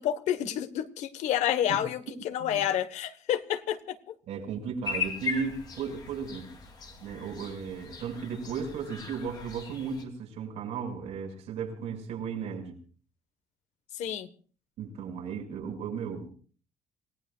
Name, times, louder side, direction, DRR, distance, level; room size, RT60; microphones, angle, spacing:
voice 1, 0.0-4.1 13.9-14.3, left 11 dB, 85° left, 1.3 m, -29 dB
voice 2, 1.7-2.1 2.4-2.6 4.3-6.5 7.0-12.8 14.8-16.3, right 6 dB, 75° right, 6.1 m, -35 dB
sound 1, 4.8-10.0, left 5 dB, 35° left, 3.0 m, -38 dB
27.5 x 18.5 x 2.4 m
cardioid pair, 175°, 12 cm